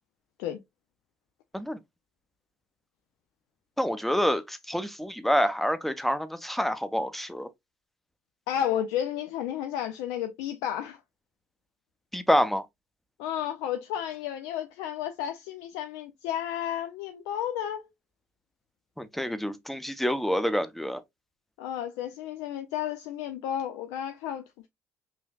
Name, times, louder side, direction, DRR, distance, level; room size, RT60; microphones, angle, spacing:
voice 1, 3.8-7.5 12.1-12.6 19.0-21.0, equal, 5° left, 0.6 m, -27 dB
voice 2, 8.5-11.0 13.2-17.9 21.6-24.7, left 10 dB, 75° left, 0.4 m, -32 dB
5.5 x 2.6 x 2.2 m
hypercardioid pair, 55°, 7 cm